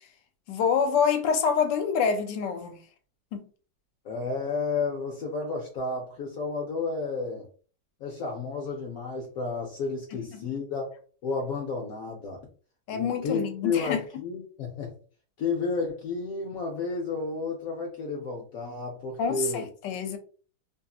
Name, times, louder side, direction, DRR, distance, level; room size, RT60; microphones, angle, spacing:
voice 1, 0.5-2.8 3.3-3.4 10.1-10.4 12.9-14.0 19.2-20.2, left 6 dB, 90° left, 1.3 m, -27 dB
voice 2, 4.0-7.5 8.0-10.9 11.2-12.4 12.9-14.9 15.4-19.7, left 4 dB, 70° left, 0.9 m, -31 dB
2.8 x 2.7 x 2.3 m
omnidirectional pair, 1.9 m